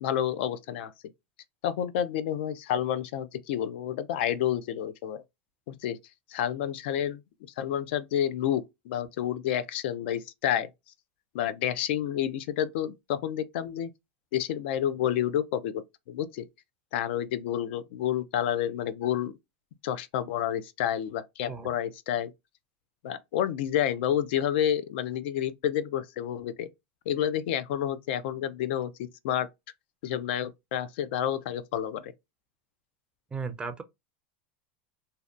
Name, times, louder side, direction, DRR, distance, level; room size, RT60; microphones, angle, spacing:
voice 1, 0.0-0.9 1.6-5.2 5.7-6.0 6.3-7.2 7.6-10.7 11.3-13.9 14.3-16.4 16.9-19.3 19.8-22.3 23.0-26.7 27.1-29.5 30.0-32.1, left 10 dB, 70° left, 0.4 m, -29 dB
voice 2, 33.3-33.8, right 5 dB, 15° right, 0.4 m, -35 dB
2.6 x 2.1 x 2.3 m
supercardioid pair, 135°, 6 cm